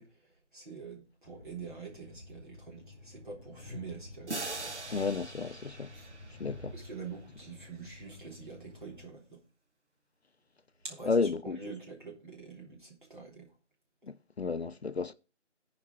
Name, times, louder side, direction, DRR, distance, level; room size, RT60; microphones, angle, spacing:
voice 1, 0.0-4.8 5.9-6.1 6.7-9.4 10.8-13.5, right 5 dB, 45° right, 3.4 m, -46 dB
Train, 1.2-9.1, left 2 dB, 10° right, 1.5 m, -50 dB
sound 1, 4.3-7.1, right 3 dB, 70° right, 1.3 m, -42 dB
voice 2, 4.9-5.9 6.4-6.7 11.1-11.6 14.0-15.1, left 4 dB, 60° left, 0.5 m, -32 dB
14.0 x 5.0 x 4.7 m
figure-of-eight pair, 175°, 35 cm